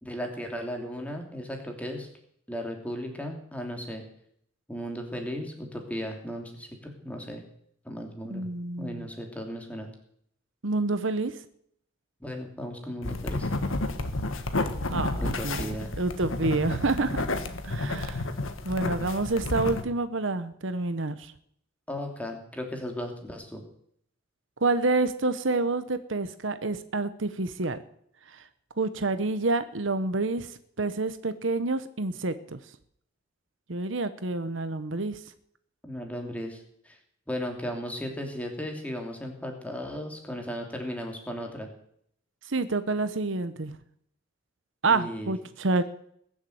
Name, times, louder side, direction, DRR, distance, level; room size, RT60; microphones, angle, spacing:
voice 1, 0.0-2.1 2.5-4.0 4.7-7.4 7.8-8.4 8.8-9.9 12.2-13.5 15.2-15.9 21.9-23.6 35.8-37.0 37.3-41.7 44.9-45.4, equal, 5° left, 2 dB, 2.9 m, -36 dB
voice 2, 8.3-9.1 10.6-11.4 14.9-17.3 17.6-18.3 18.6-21.3 24.6-27.8 28.3-28.4 28.8-30.5 30.8-32.6 33.7-35.2 42.5-43.8 44.8-45.8, right 3 dB, 70° right, 12 dB, 1.0 m, -28 dB
sound 1, 13.0-19.8, left 2 dB, 85° left, 1.5 m, -31 dB
21.0 x 7.4 x 8.0 m, 0.69 s
head